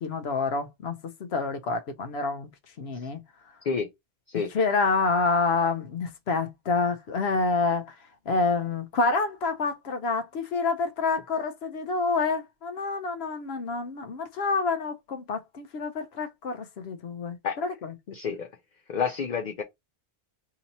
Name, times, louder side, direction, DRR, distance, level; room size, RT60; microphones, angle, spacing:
voice 1, 0.0-2.5 2.8-3.2 4.5-7.9 8.3-18.2, left 4 dB, 75° left, 0.9 m, -28 dB
voice 2, 18.1-18.5 18.9-19.6, left 6 dB, 55° left, 0.6 m, -28 dB
2.9 x 2.8 x 3.9 m
omnidirectional pair, 1.1 m